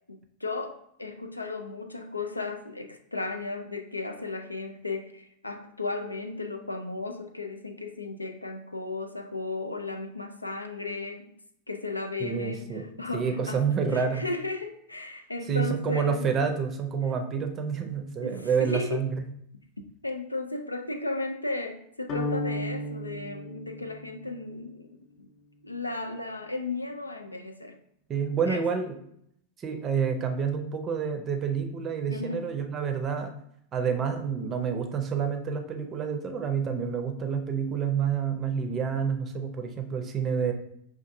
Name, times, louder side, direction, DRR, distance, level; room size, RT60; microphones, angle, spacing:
voice 1, 0.1-11.3 11.7-13.6 13.9-16.3 18.2-19.0 20.0-24.9 25.2-25.3 25.6-27.8 28.5-28.6 32.1-32.5, left 3 dB, 85° left, 6 dB, 0.4 m, -35 dB
voice 2, 12.2-12.8 13.1-14.2 15.5-19.1 28.1-28.9 29.6-33.3 33.7-40.5, right 6 dB, 25° right, 5 dB, 0.6 m, -28 dB
sound 1, 22.1-24.4, left 1 dB, 40° left, 0.7 m, -34 dB
5.7 x 2.4 x 2.6 m, 0.72 s
figure-of-eight pair, 90°, 0 cm